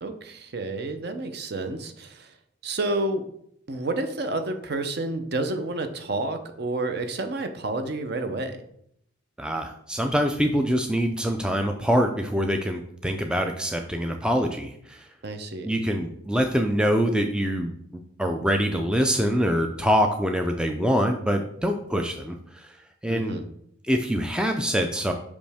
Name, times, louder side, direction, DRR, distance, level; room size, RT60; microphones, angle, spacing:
voice 1, 0.0-2.3 2.6-3.2 3.7-8.6 15.2-15.7 23.1-23.4, right 2 dB, 50° right, 8 dB, 0.6 m, -30 dB
voice 2, 9.4-15.1 15.6-17.7 18.2-22.8 23.0-23.4 23.9-25.1, equal, 5° right, 4 dB, 0.3 m, -24 dB
5.5 x 5.1 x 3.4 m, 0.70 s
head